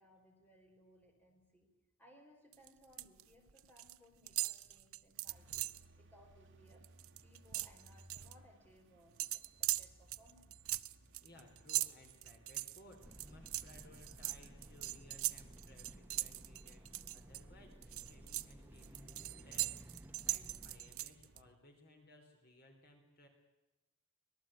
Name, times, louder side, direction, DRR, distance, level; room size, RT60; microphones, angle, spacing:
voice 1, 0.0-1.7 2.0-6.8 7.2-10.6, equal, 10° left, 1 dB, 4.6 m, -65 dB
sound 1, 2.5-3.2 3.5-4.0 4.3-5.9 6.3-6.4 6.7-8.3 9.2-17.4 17.8-21.4, right 16 dB, 70° right, 0.7 m, -40 dB
sound 2, 5.3-21.6, right 1 dB, 55° right, 2.3 m, -65 dB
voice 2, 11.2-23.3, left 1 dB, 45° left, 3 dB, 3.5 m, -62 dB
sound 3, 13.0-21.1, equal, 10° right, 1.1 m, -56 dB
25.0 x 18.5 x 8.9 m, 1.1 s
head